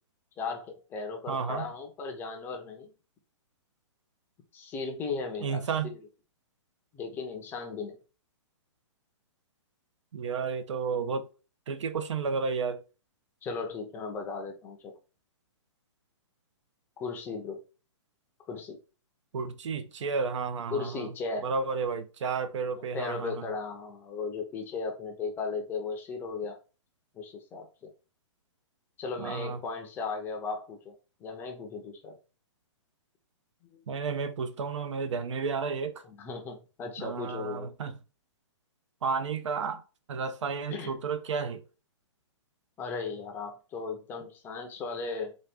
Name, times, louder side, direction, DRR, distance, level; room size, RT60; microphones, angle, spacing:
voice 1, 0.4-2.9 4.5-6.0 6.9-8.0 13.4-14.9 17.0-17.6 18.5-18.8 20.7-21.5 22.8-26.6 27.1-27.9 29.0-30.9 31.2-32.1 33.7-33.8 36.1-37.7 40.7-40.9 42.8-45.3, left 4 dB, 15° left, 0.5 m, -36 dB
voice 2, 1.3-1.6 5.4-5.9 10.1-11.3 11.7-12.8 19.3-21.1 21.4-23.4 29.2-29.6 33.9-36.0 37.0-37.9 39.0-39.8 40.1-41.6, right 5 dB, 70° right, 0.7 m, -32 dB
4.0 x 2.4 x 3.4 m
hypercardioid pair, 155°, 16 cm